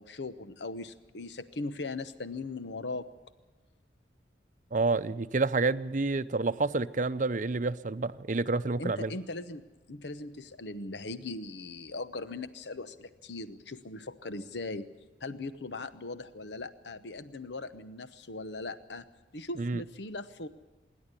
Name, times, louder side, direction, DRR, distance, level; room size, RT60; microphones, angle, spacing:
voice 1, 0.0-3.0 8.8-14.9 15.2-19.1 19.3-20.5, left 2 dB, 75° left, 13 dB, 0.9 m, -39 dB
voice 2, 4.7-9.1 19.6-19.8, right 3 dB, 45° right, 12 dB, 0.7 m, -29 dB
26.5 x 11.5 x 9.8 m, 1.2 s
head